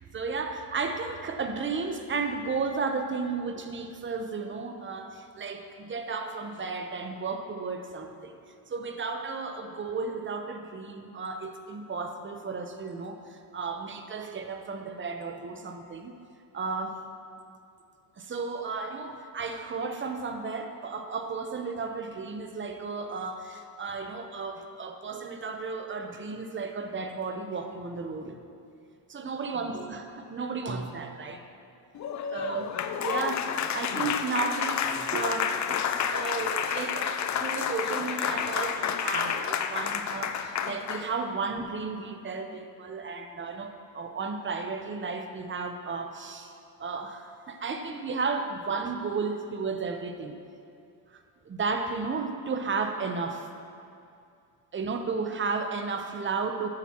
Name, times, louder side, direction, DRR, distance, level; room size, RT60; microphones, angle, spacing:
voice 1, 0.1-8.4 8.7-16.1 16.5-17.0 18.2-28.4 29.1-31.4 32.3-46.5 46.8-50.3 51.1-51.2 51.4-53.5 54.7-56.7, right 4 dB, 25° right, 5 dB, 0.9 m, -33 dB
Applause, 31.9-41.1, left 8 dB, 40° left, 0.5 m, -30 dB
13.5 x 9.0 x 3.0 m, 2.5 s
cardioid pair, 105°, 48 cm